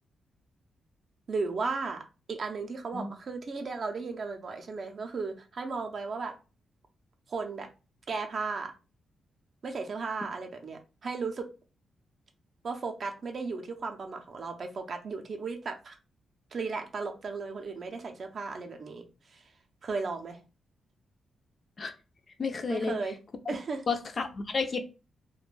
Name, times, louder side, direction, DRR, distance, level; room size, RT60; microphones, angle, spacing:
voice 1, 1.3-2.0 2.3-6.3 7.3-7.7 8.1-8.7 9.6-11.5 12.6-16.0 16.5-19.0 19.3-19.4 19.8-20.4 22.7-23.2 23.5-23.8, right 4 dB, 45° right, 4 dB, 0.4 m, -35 dB
voice 2, 22.4-22.9 23.9-24.8, left 4 dB, 40° left, 7 dB, 0.3 m, -31 dB
2.4 x 2.1 x 3.0 m, 0.32 s
cardioid pair, 130°, 0 cm